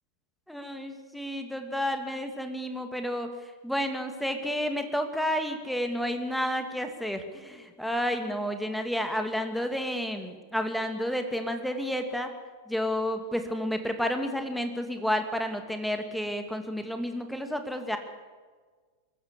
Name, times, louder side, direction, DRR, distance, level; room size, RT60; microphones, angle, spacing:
voice 1, 0.5-3.3 3.6-12.3 12.7-18.0, equal, ahead, 6 dB, 2.4 m, -31 dB
23.5 x 14.0 x 8.4 m, 1.5 s
figure-of-eight pair, 90°, 0 cm